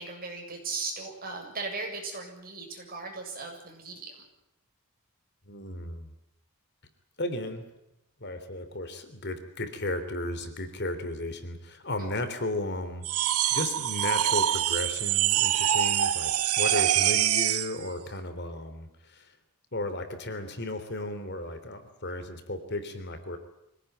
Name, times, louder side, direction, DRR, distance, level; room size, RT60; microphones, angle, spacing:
voice 1, 0.0-4.2 12.0-12.1 16.7-16.8, right 3 dB, 40° right, 2 dB, 7.4 m, -37 dB
voice 2, 5.5-6.1 7.2-7.7 8.2-19.3 19.7-23.4, left 2 dB, 50° left, 9 dB, 3.3 m, -35 dB
sound 1, 13.0-17.8, right 11 dB, 75° right, 0.9 m, -25 dB
25.5 x 18.0 x 9.3 m, 0.85 s
head